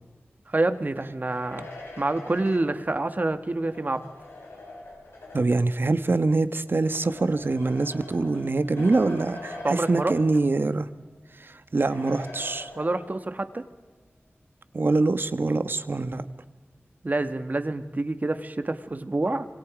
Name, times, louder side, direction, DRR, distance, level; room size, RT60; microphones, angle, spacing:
voice 1, 0.5-1.7 2.0-4.1 9.6-10.1 12.8-13.6 17.0-19.5, right 2 dB, 40° right, 9 dB, 1.6 m, -27 dB
sound 1, 1.1-5.7 6.6-10.8 11.1-11.2 11.9-13.4, left 2 dB, 85° left, 6.3 m, -43 dB
voice 2, 5.3-10.9 11.4-12.7 14.7-16.2, right 3 dB, 55° right, 12 dB, 1.3 m, -24 dB
27.0 x 25.0 x 5.1 m, 1.3 s
wide cardioid pair, 75°, 4 cm